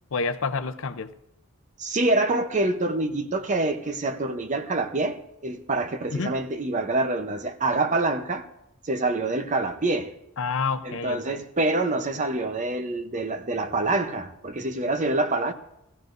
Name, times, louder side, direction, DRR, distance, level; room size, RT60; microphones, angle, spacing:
voice 1, 0.1-1.1 6.1-6.4 10.4-11.4, left 4 dB, 65° left, 0.7 m, -28 dB
voice 2, 1.8-8.5 8.8-10.1 10.8-15.5, right 2 dB, 35° right, 0.8 m, -26 dB
17.5 x 14.5 x 2.6 m
head